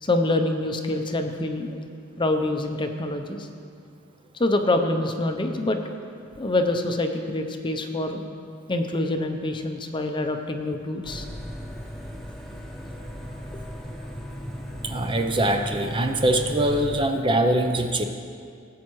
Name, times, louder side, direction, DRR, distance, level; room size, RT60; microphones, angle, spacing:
voice 1, 0.0-1.8 2.2-3.5 4.4-5.8 6.4-8.2 8.7-11.3, left 2 dB, 25° left, 5 dB, 0.6 m, -25 dB
sound 1, 11.0-17.1, equal, ahead, 0.9 m, -36 dB
voice 2, 14.8-18.0, right 1 dB, 25° right, 6 dB, 0.5 m, -23 dB
18.0 x 8.4 x 3.1 m, 2.3 s
head